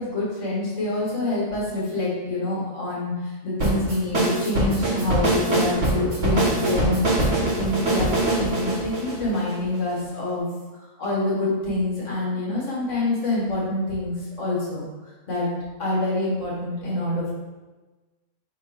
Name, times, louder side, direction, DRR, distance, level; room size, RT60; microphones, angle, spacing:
voice 1, 0.0-10.5 10.7-14.8 15.3-15.5 15.8-17.3, left 2 dB, 65° left, -7 dB, 2.0 m, -26 dB
sound 1, 3.6-9.9, right 2 dB, 65° right, 1.5 m, -23 dB
3.6 x 3.1 x 4.8 m, 1.2 s
omnidirectional pair, 1.4 m